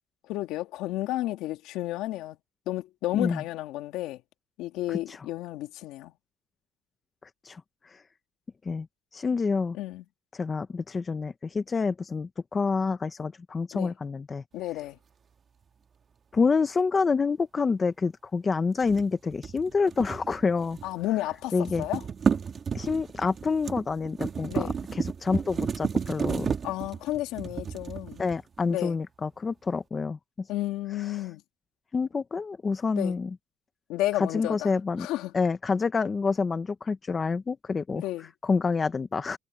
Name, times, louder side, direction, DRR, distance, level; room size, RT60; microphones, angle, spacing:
voice 1, 0.3-2.4 2.7-4.2 4.6-6.1 9.7-10.0 13.7-13.9 14.5-15.0 20.8-22.0 24.5-24.7 26.6-28.2 28.7-29.0 30.5-31.4 33.0-33.2 33.9-34.7 35.0-35.3 37.9-38.3, left 15 dB, 70° left, 2.4 m, -32 dB
voice 2, 9.1-9.8 10.3-14.4 16.3-20.8 21.5-21.8 22.7-26.5 28.2-30.2 31.9-33.3 34.2-35.1 35.3-38.0 38.4-39.4, left 4 dB, 25° left, 0.9 m, -27 dB
sound 1, 18.8-21.0 21.3-28.6, right 6 dB, 30° right, 2.4 m, -32 dB
cardioid pair, 130°, 0 cm